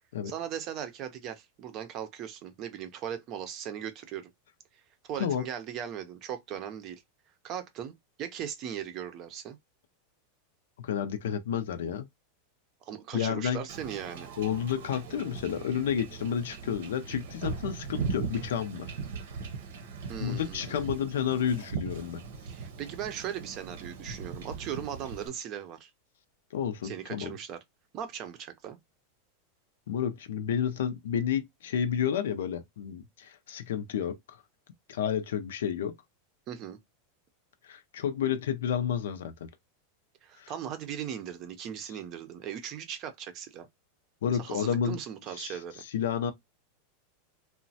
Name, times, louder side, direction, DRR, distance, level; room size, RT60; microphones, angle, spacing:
voice 1, 0.2-4.3 5.0-7.0 7.4-9.6 12.9-14.3 20.1-20.9 22.5-25.9 26.8-27.6 27.9-28.8 36.5-36.8 40.2-43.7 44.4-45.8, right 9 dB, 35° right, 0.5 m, -38 dB
voice 2, 10.8-12.1 13.1-13.6 14.4-18.9 20.2-22.2 26.5-27.3 29.9-34.4 34.9-35.9 37.6-39.3 40.4-40.5 44.2-45.0 45.4-46.3, left 8 dB, 90° left, 0.5 m, -31 dB
Wind / Ocean / Boat Water vehicle, 13.7-25.3, right 5 dB, 75° right, 0.7 m, -39 dB
3.0 x 2.1 x 2.6 m
supercardioid pair, 155°, 0 cm